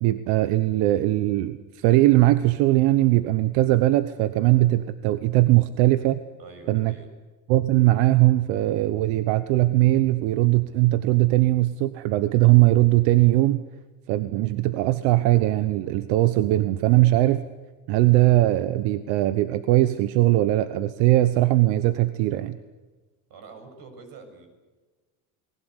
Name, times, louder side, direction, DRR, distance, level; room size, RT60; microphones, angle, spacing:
voice 1, 0.0-6.2 6.7-6.9 7.5-13.6 14.1-17.4 17.9-22.6, right 16 dB, 90° right, 12 dB, 1.1 m, -20 dB
voice 2, 6.4-7.1 23.3-24.5, right 4 dB, 60° right, 5 dB, 7.4 m, -45 dB
29.0 x 20.5 x 8.1 m, 1.3 s
cardioid pair, 120°, 39 cm